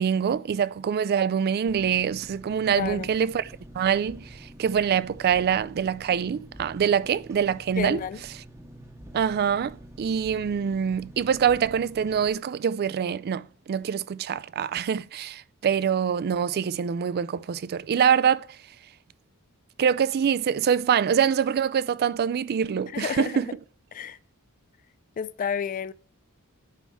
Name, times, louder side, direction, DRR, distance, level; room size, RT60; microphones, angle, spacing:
voice 1, 0.0-8.0 9.1-18.5 19.8-23.5, right 7 dB, 45° right, 0.3 m, -25 dB
Engine, 1.7-12.3, right 1 dB, 15° right, 0.8 m, -47 dB
voice 2, 2.7-3.1 7.8-8.2 22.9-23.5 23.9-24.2 25.2-25.9, left 7 dB, 40° left, 0.3 m, -31 dB
9.2 x 3.5 x 6.0 m
head